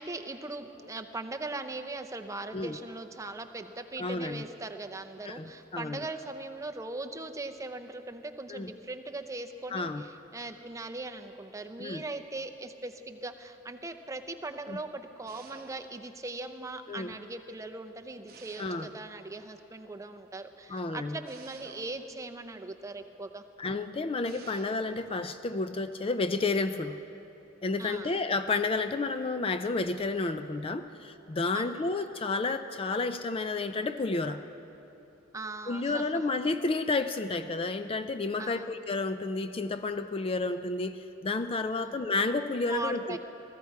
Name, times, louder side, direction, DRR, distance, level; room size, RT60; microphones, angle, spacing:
voice 1, 0.0-23.4 27.8-28.2 31.5-31.8 35.3-36.1 38.4-38.7 41.8-42.0 42.6-43.2, right 2 dB, 15° right, 6 dB, 0.6 m, -40 dB
voice 2, 4.0-4.4 5.3-6.1 8.5-8.7 9.7-10.0 11.8-12.0 14.7-14.8 16.9-17.1 18.6-18.9 20.7-21.2 23.6-27.0 27.6-34.4 35.7-43.2, left 3 dB, 30° left, 10 dB, 0.4 m, -31 dB
sound 1, 15.3-16.2 18.3-19.2 21.2-22.3 24.2-25.0, right 5 dB, 50° right, 0.9 m, -52 dB
19.5 x 14.0 x 4.7 m, 2.9 s
head